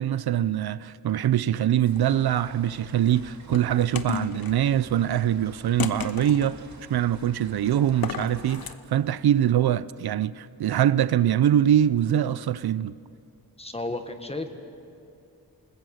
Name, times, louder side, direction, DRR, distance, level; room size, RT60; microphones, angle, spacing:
voice 1, 0.0-6.6 6.9-12.9, right 11 dB, 80° right, 0.6 m, -23 dB
sound 1, 1.8-2.4 3.1-4.6 5.8-6.6 7.9-8.8, left 7 dB, 70° left, 1.0 m, -33 dB
sound 2, 1.8-8.7, right 4 dB, 50° right, 2.4 m, -48 dB
voice 2, 13.6-14.7, left 2 dB, 15° left, 1.6 m, -33 dB
28.5 x 20.5 x 6.5 m
wide cardioid pair, 115°, 37 cm